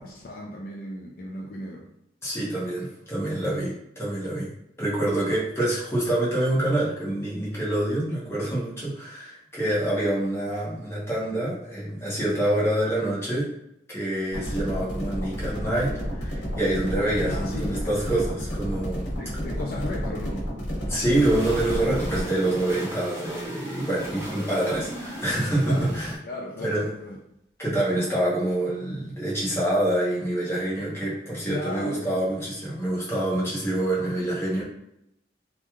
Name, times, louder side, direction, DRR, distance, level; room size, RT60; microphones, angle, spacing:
voice 1, 0.0-1.9 17.2-17.9 19.1-20.5 25.6-25.9 26.2-27.2 31.5-32.2, left 2 dB, 50° left, -1 dB, 0.3 m, -35 dB
voice 2, 2.2-4.5 4.8-13.5 13.9-19.1 20.9-26.1 26.6-26.9 27.6-34.6, right 1 dB, 15° left, -7 dB, 0.8 m, -26 dB
sound 1, 14.3-22.2, equal, 80° left, 1.1 m, -31 dB
sound 2, 21.1-26.2, equal, 15° right, 0.5 m, -36 dB
2.9 x 2.3 x 2.3 m, 0.79 s
head